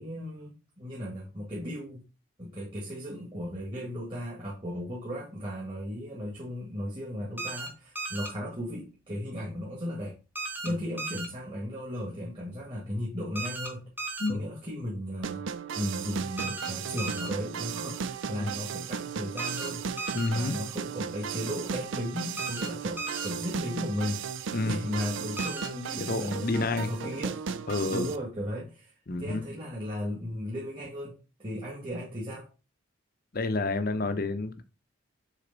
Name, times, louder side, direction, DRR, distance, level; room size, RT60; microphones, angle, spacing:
voice 1, 0.0-2.0 2.4-10.2 10.6-13.8 14.3-15.4 15.8-19.8 20.3-24.2 24.6-27.4 27.9-32.5, equal, 25° right, 1.7 m, -36 dB
sound 1, 7.4-7.7 8.0-8.3 10.4-10.7 11.0-11.3 13.4-13.7 14.0-14.3 16.4-16.7 17.0-17.3 19.4-19.7 20.0-20.3 22.4-22.7 23.0-23.3 25.4-25.7, right 3 dB, 10° right, 1.2 m, -35 dB
sound 2, 15.2-28.2, right 6 dB, 70° right, 0.4 m, -36 dB
voice 2, 20.1-20.6 24.5-24.8 26.0-26.9 27.7-28.1 29.1-29.4 33.3-34.6, left 3 dB, 45° left, 0.7 m, -29 dB
6.6 x 4.1 x 3.9 m
head